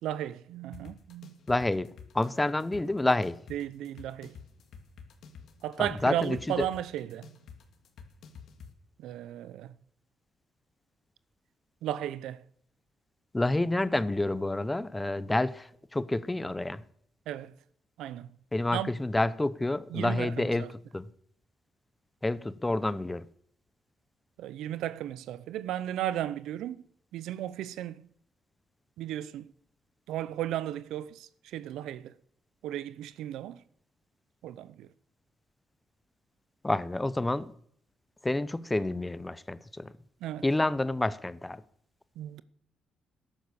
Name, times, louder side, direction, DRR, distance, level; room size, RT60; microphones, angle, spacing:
voice 1, 0.0-1.4 3.5-4.3 5.6-7.3 9.0-9.7 11.8-12.4 17.3-17.5 18.0-18.3 18.7-18.9 19.9-20.7 24.4-26.8 27.1-28.1 29.0-29.5 30.1-32.1 32.6-33.6 34.4-34.9 40.2-40.4 42.2-42.4, right 12 dB, 85° right, 0.6 m, -35 dB
sound 1, 0.7-8.7, left 5 dB, 70° left, 2.0 m, -49 dB
voice 2, 1.5-3.4 5.8-6.7 13.3-16.8 18.5-20.7 20.9-21.1 22.2-23.2 36.6-37.5 38.2-39.9 40.4-41.6, left 2 dB, 15° left, 0.7 m, -29 dB
14.0 x 10.5 x 7.0 m
cardioid pair, 90°, 0 cm